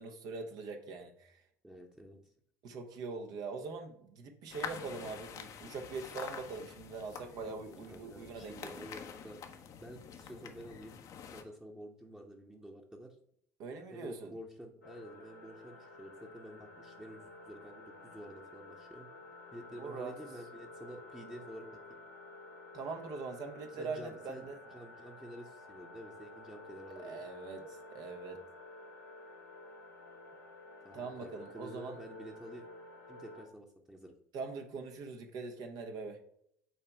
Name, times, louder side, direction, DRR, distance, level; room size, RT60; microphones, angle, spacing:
voice 1, 0.0-1.3 2.6-8.7 13.6-14.3 19.7-20.1 22.7-24.6 27.0-28.4 30.9-32.0 34.3-36.2, right 4 dB, 50° right, 4 dB, 1.1 m, -42 dB
voice 2, 1.6-2.2 7.4-9.4 9.8-11.0 11.3-13.1 13.9-19.1 19.5-22.0 23.8-27.3 30.8-32.7 33.1-34.1, equal, 10° right, 0 dB, 1.1 m, -50 dB
sound 1, 4.5-11.4, left 7 dB, 45° left, 0.9 m, -47 dB
sound 2, 14.8-33.4, left 2 dB, 85° left, 1.1 m, -52 dB
8.4 x 3.3 x 4.6 m, 0.69 s
figure-of-eight pair, 60°, 8 cm